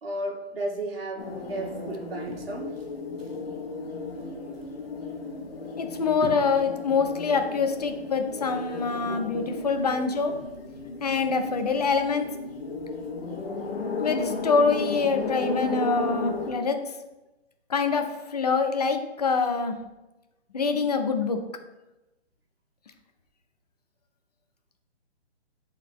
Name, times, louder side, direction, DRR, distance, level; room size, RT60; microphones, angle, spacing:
voice 1, 0.0-2.8 3.2-3.3 6.2-6.3 8.7-8.8 9.2-10.0, right 2 dB, 60° right, -1 dB, 1.6 m, -35 dB
sound 1, 1.2-16.5, left 3 dB, 60° left, 1.5 m, -34 dB
voice 2, 5.8-10.3 11.0-12.3 14.0-16.9 17.7-19.8 20.5-21.4, left 4 dB, 35° left, 6 dB, 0.6 m, -25 dB
8.5 x 4.1 x 3.2 m, 1.0 s
hypercardioid pair, 175°, 33 cm